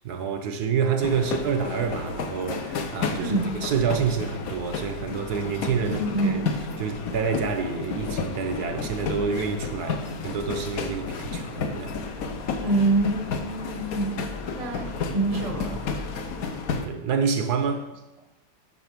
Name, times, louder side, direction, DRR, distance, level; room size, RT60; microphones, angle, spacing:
voice 1, 0.0-6.4 6.8-12.0 16.8-17.9, right 6 dB, 70° right, 1.2 m, -28 dB
sound 1, 1.0-16.9, left 4 dB, 60° left, 1.2 m, -32 dB
voice 2, 3.2-3.5 5.8-6.4 12.6-14.2 14.5-15.9, right 2 dB, 30° right, 0.8 m, -26 dB
6.9 x 6.0 x 5.9 m
omnidirectional pair, 1.9 m